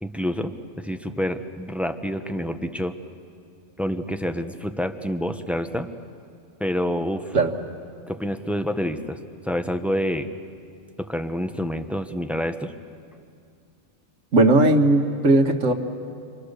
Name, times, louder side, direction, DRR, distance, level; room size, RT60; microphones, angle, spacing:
voice 1, 0.0-2.9 3.8-5.9 6.6-7.4 8.1-9.2 9.4-10.3 11.0-12.7, equal, ahead, 7 dB, 0.8 m, -27 dB
voice 2, 14.3-15.7, right 2 dB, 75° right, 4 dB, 1.8 m, -17 dB
30.0 x 24.0 x 6.6 m, 2.3 s
omnidirectional pair, 1.3 m